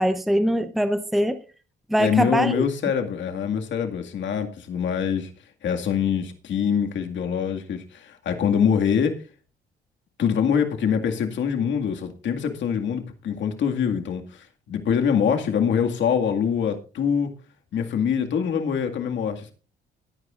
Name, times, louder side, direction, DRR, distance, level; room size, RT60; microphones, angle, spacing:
voice 1, 0.0-1.4 1.9-2.6, equal, ahead, 0.7 m, -22 dB
voice 2, 2.0-5.3 5.6-9.2 10.2-17.3 17.7-19.5, left 7 dB, 70° left, 2.0 m, -24 dB
19.5 x 9.4 x 2.5 m
cardioid pair, 90°, 20 cm